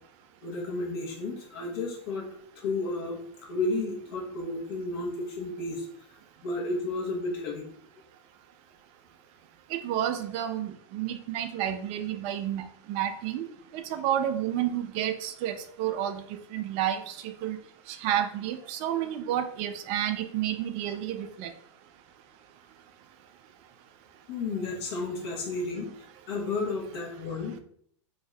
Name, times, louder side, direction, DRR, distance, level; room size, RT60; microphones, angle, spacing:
voice 1, 0.4-2.2 2.6-3.2 3.5-5.8 6.4-7.6 24.3-25.9 26.3-27.6, left 3 dB, 60° left, -1 dB, 1.0 m, -32 dB
voice 2, 9.8-13.4 13.9-16.2 16.5-17.1 17.4-17.6 18.0-21.5, right 11 dB, 40° right, 8 dB, 0.4 m, -30 dB
2.7 x 2.3 x 3.2 m, 0.63 s
hypercardioid pair, 105°, 15 cm